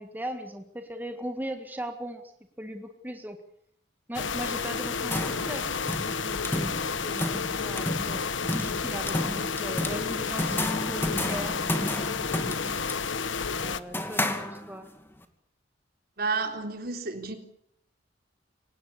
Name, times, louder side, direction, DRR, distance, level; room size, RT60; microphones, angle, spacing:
voice 1, 0.0-2.2 2.6-3.4 4.1-5.8 6.1-6.7 7.0-8.2 8.5-12.0 13.6-14.9, right 1 dB, 10° right, 1.8 m, -38 dB
sound 1, 4.1-13.8, left 5 dB, 75° left, 1.2 m, -31 dB
sound 2, 4.8-15.0, left 1 dB, 10° left, 2.3 m, -33 dB
voice 2, 16.2-17.4, right 4 dB, 55° right, 3.6 m, -31 dB
25.0 x 18.5 x 8.6 m
head